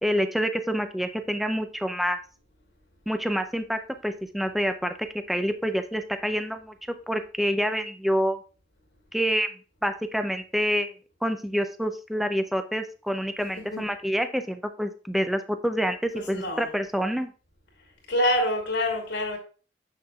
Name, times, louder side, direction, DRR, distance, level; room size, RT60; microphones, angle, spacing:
voice 1, 0.0-2.2 3.1-8.4 9.1-9.5 9.8-10.9 11.2-17.3, equal, ahead, 0.4 m, -27 dB
voice 2, 16.1-16.7 18.1-19.4, left 1 dB, 90° left, 2.5 m, -26 dB
7.1 x 6.5 x 2.3 m
head